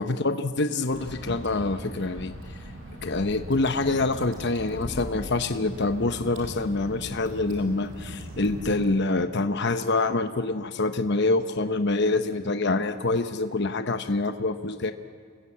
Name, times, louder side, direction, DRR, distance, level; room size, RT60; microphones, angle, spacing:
voice 1, 0.0-2.3 3.0-14.9, left 2 dB, 50° left, 9 dB, 1.0 m, -26 dB
Water / Drip, 0.9-8.9, equal, 60° right, 6.8 m, -39 dB
28.0 x 21.0 x 8.6 m, 2.1 s
head